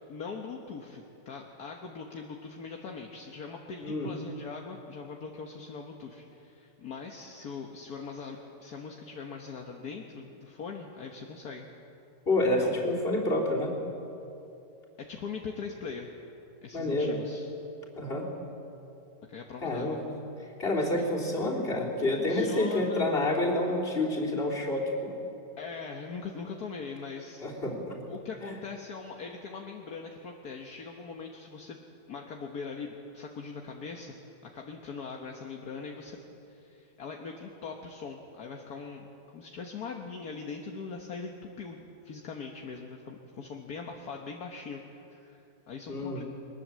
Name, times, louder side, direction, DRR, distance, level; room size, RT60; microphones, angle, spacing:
voice 1, 0.0-11.7 12.5-12.9 15.1-16.2 16.6-17.5 19.3-20.0 21.0-21.1 22.2-23.1 25.6-27.5 28.1-34.1 34.4-36.2 36.5-39.1 39.3-46.2, left 5 dB, 60° left, 1 dB, 1.8 m, -41 dB
voice 2, 12.3-13.7 16.7-17.2 18.0-18.3 19.6-20.0 20.6-25.1 27.4-28.0 28.5-28.6 45.9-46.2, left 1 dB, 35° left, -2 dB, 3.5 m, -28 dB
22.5 x 20.0 x 7.5 m, 2.8 s
omnidirectional pair, 1.9 m